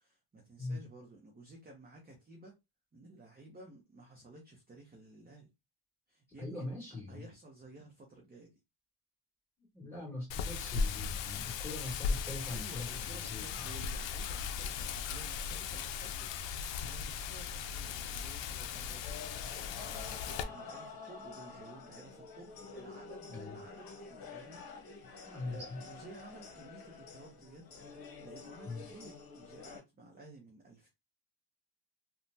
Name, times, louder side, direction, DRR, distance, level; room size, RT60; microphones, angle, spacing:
voice 1, 0.0-2.5 2.9-5.5 6.1-6.8 7.1-8.5 12.5-19.0 19.4-25.2 25.5-27.7 28.0-30.9, right 2 dB, 20° right, 0.6 m, -54 dB
voice 2, 6.4-7.3 9.7-13.7 23.3-23.6 25.2-25.8 28.6-28.8, left 2 dB, 5° left, 1.9 m, -42 dB
Wind, 10.3-20.4, left 6 dB, 75° left, 0.5 m, -37 dB
sound 1, 19.0-29.8, left 4 dB, 55° left, 1.1 m, -49 dB
3.2 x 2.2 x 2.7 m
cardioid pair, 150°, 43 cm